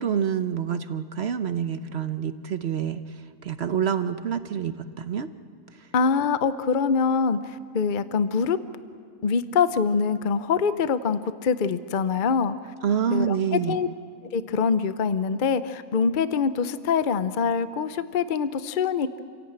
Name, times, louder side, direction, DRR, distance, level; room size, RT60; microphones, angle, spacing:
voice 1, 0.0-5.3 5.7-5.9 12.8-13.8, right 8 dB, 55° right, 10 dB, 1.0 m, -27 dB
voice 2, 5.9-8.6 9.2-12.7 13.1-13.9 14.2-19.2, left 5 dB, 45° left, 12 dB, 0.8 m, -24 dB
28.5 x 17.0 x 8.8 m, 2.2 s
omnidirectional pair, 1.4 m